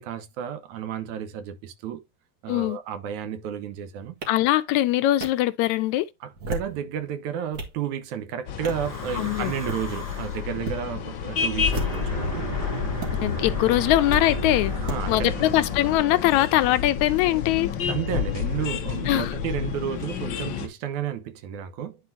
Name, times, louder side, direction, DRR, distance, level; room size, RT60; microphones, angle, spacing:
voice 1, 0.0-2.0 2.4-4.2 6.2-12.5 14.8-15.4 17.9-22.0, right 9 dB, 80° right, 2.4 m, -32 dB
voice 2, 2.5-2.8 4.3-6.1 9.2-9.5 13.2-14.7 15.1-17.7 19.1-19.3, left 15 dB, 90° left, 2.0 m, -22 dB
sound 1, 4.2-4.3 5.2-5.3 6.3-6.8 7.3-7.8 8.6-8.9 9.5-9.8 10.6-10.8 11.6-12.2 13.0-13.1 14.1-14.2 14.9-15.0, equal, 35° right, 2.1 m, -33 dB
sound 2, 8.5-20.7, left 7 dB, 60° left, 1.2 m, -31 dB
Breathing / Wind, 8.6-10.5 11.4-16.8, left 3 dB, 20° right, 2.6 m, -31 dB
10.0 x 4.5 x 2.7 m
omnidirectional pair, 3.3 m